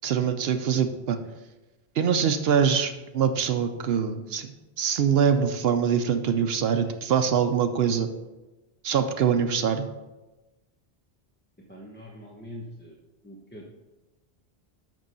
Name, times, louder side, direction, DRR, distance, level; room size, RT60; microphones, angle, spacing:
voice 1, 0.0-1.2 2.0-8.1 8.8-9.9, right 7 dB, 70° right, 8 dB, 0.8 m, -24 dB
voice 2, 11.7-13.0 13.2-13.7, left 1 dB, 10° left, -2 dB, 0.8 m, -43 dB
6.6 x 6.2 x 5.3 m, 1.1 s
omnidirectional pair, 1.1 m